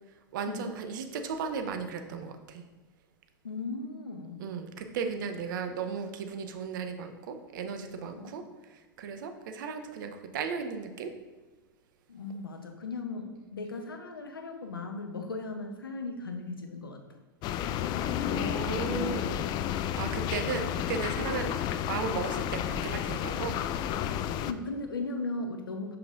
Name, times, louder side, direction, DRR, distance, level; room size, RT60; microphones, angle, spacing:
voice 1, 0.3-2.6 4.4-8.4 8.7-11.1 18.3-19.4 19.9-23.6, right 6 dB, 65° right, 7 dB, 0.8 m, -35 dB
voice 2, 3.4-4.4 8.1-8.3 12.1-17.0 24.5-26.0, left 3 dB, 90° left, 5 dB, 0.8 m, -37 dB
sound 1, 17.4-24.5, left 10 dB, 40° left, 0.3 m, -31 dB
6.7 x 5.9 x 2.5 m, 1.2 s
hypercardioid pair, 95°, 12 cm